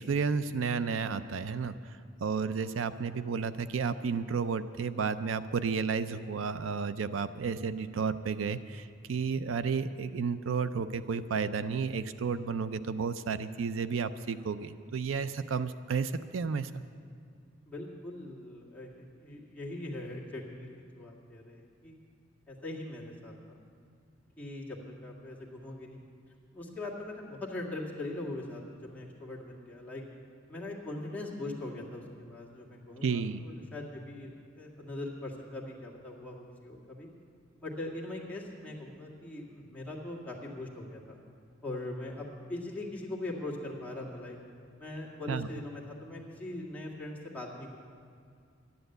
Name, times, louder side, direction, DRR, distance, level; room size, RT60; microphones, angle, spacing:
voice 1, 0.0-16.8 33.0-33.5 45.3-45.5, right 5 dB, 85° right, 13 dB, 0.5 m, -32 dB
voice 2, 17.7-22.0 22.5-23.6 24.4-26.0 26.5-30.0 30.5-37.1 37.6-41.2 41.6-44.4 44.8-47.8, left 2 dB, 10° left, -5 dB, 2.0 m, -41 dB
12.0 x 10.5 x 7.9 m, 2.3 s
head